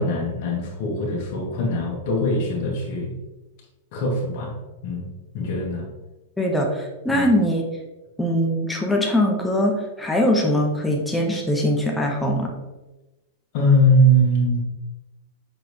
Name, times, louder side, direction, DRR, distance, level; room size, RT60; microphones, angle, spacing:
voice 1, 0.0-3.1 3.9-4.6 4.8-5.1 5.3-5.9 7.1-7.2 13.5-14.6, equal, 55° left, -3 dB, 2.1 m, -21 dB
voice 2, 6.4-7.6 8.2-12.5, left 1 dB, 5° left, 0 dB, 1.3 m, -22 dB
5.9 x 5.0 x 3.3 m, 1.1 s
hypercardioid pair, 110°, 0 cm